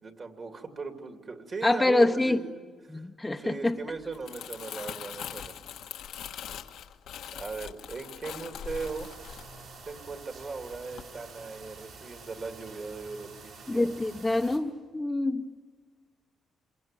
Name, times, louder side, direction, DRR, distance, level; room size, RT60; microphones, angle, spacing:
voice 1, 0.0-3.0 3.4-5.6 7.3-9.1 9.9-14.0, right 4 dB, 40° right, 5 dB, 2.7 m, -38 dB
voice 2, 1.6-2.4 2.9-3.8 13.7-15.5, left 2 dB, 15° left, 5 dB, 0.9 m, -26 dB
Crumpling crinkling, 4.0-10.4 10.7-11.0, left 9 dB, 85° left, 1.4 m, -42 dB
sound 1, 8.6-14.6, right 4 dB, 70° right, 7.2 m, -48 dB
27.0 x 23.0 x 9.0 m, 1.5 s
cardioid pair, 90°, 0 cm